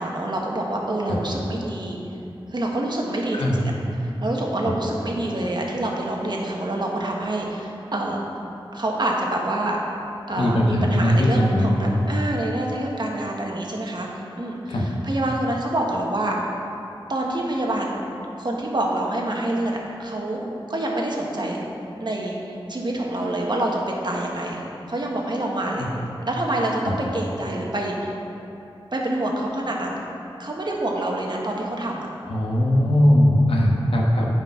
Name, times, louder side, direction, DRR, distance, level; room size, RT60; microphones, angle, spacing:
voice 1, 0.0-2.0 2.5-3.6 4.0-8.2 8.7-9.8 10.3-14.1 14.4-16.4 17.1-18.0 18.4-20.4 20.7-21.6 22.0-24.6 24.9-25.9 26.3-28.1 28.9-30.0 30.4-32.1, right 1 dB, 55° right, -1 dB, 1.4 m, -26 dB
voice 2, 10.4-12.0 14.7-14.8 25.8-25.9 26.8-26.9 32.3-34.3, left 1 dB, 80° left, -1 dB, 1.2 m, -19 dB
9.0 x 5.3 x 5.9 m, 2.8 s
wide cardioid pair, 65°, 9 cm